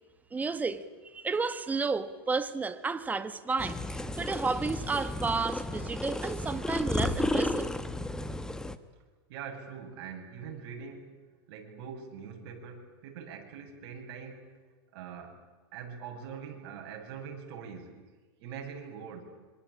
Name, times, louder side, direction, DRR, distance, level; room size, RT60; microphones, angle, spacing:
voice 1, 0.3-7.7, right 4 dB, 10° right, 1.5 m, -32 dB
sound 1, 3.6-8.8, left 1 dB, 5° left, 1.3 m, -33 dB
voice 2, 9.3-11.1 11.5-14.6 14.9-15.4 15.7-18.0 18.4-19.2, right 6 dB, 55° right, 8.0 m, -43 dB
26.5 x 25.5 x 8.8 m
supercardioid pair, 145°, 14 cm